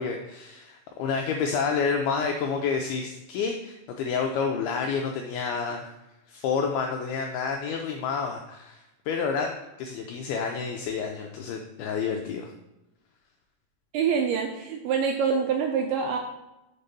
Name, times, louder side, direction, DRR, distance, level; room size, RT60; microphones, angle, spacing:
voice 1, 0.0-5.9 6.3-12.5, left 5 dB, 90° left, 3 dB, 2.2 m, -29 dB
voice 2, 13.9-16.2, right 6 dB, 85° right, 3 dB, 2.3 m, -25 dB
6.9 x 3.6 x 5.3 m, 0.96 s
omnidirectional pair, 5.0 m